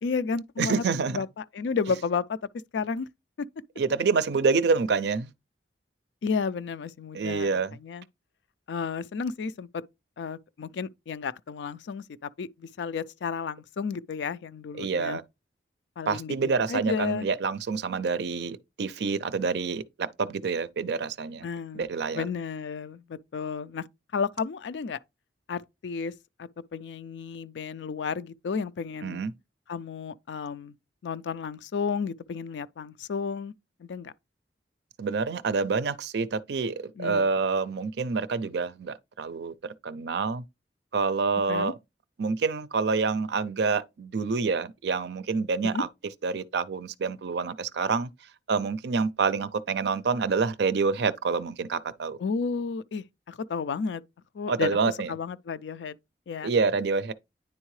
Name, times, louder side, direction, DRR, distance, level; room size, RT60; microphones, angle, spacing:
voice 1, 0.0-2.4 2.7-3.1 6.2-7.5 7.8-8.0 8.7-9.7 10.2-15.2 16.0-16.4 16.7-17.3 21.4-21.9 22.1-23.9 24.1-25.0 25.5-26.1 26.4-29.2 29.7-30.7 31.0-33.5 33.8-34.1 37.0-37.3 41.5-41.7 45.6-45.8 52.2-54.0 54.3-54.8 55.1-56.0 56.3-56.5, left 5 dB, 80° left, 0.4 m, -32 dB
voice 2, 0.6-1.2 3.8-5.3 7.1-7.8 14.8-15.2 16.1-21.5 21.7-22.2 29.0-29.3 35.0-39.5 39.8-40.4 40.9-41.7 42.2-45.9 46.2-48.1 48.5-52.2 54.5-55.1 56.4-57.1, right 4 dB, 65° right, 0.5 m, -27 dB
9.8 x 3.6 x 3.1 m
head